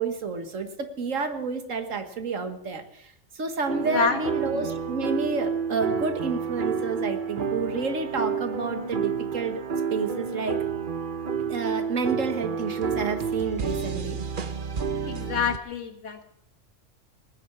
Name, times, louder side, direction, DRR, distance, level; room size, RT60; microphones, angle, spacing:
voice 1, 0.0-3.1 3.4-9.6 9.9-10.6 11.5-14.2, right 4 dB, 80° right, 7 dB, 1.9 m, -30 dB
sound 1, 3.7-15.6, right 6 dB, 45° right, 1.0 m, -30 dB
voice 2, 3.8-4.3 4.5-4.7 15.0-16.2, left 6 dB, 70° left, 6 dB, 1.8 m, -28 dB
19.5 x 9.7 x 6.0 m, 0.74 s
omnidirectional pair, 1.3 m